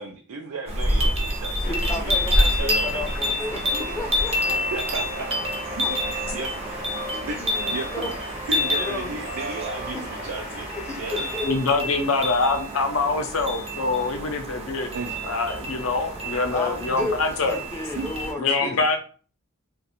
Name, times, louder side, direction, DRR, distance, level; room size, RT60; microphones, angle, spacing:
voice 1, 0.0-3.1 4.7-5.3 5.8-6.0 6.3-6.9 7.2-7.9 8.5-10.7 11.0-11.3 14.9-15.2 16.3-16.4 18.0-18.1 18.6-18.8, right 3 dB, 80° right, 3 dB, 0.4 m, -34 dB
sound 1, 0.7-18.3, equal, 30° right, 0.6 m, -28 dB
sound 2, 1.6-11.5, left 2 dB, 40° left, 0.8 m, -40 dB
voice 2, 1.7-4.3 5.8-5.9 7.1-8.2 8.7-9.1 9.9-10.0 10.9-11.5 16.5-18.8, left 2 dB, 10° left, 2 dB, 0.5 m, -33 dB
sound 3, 3.6-10.2, right 2 dB, 55° right, 1.0 m, -37 dB
voice 3, 11.4-14.9 15.3-17.6 18.4-19.0, left 3 dB, 70° left, 6 dB, 0.6 m, -24 dB
2.5 x 2.2 x 4.0 m, 0.40 s
head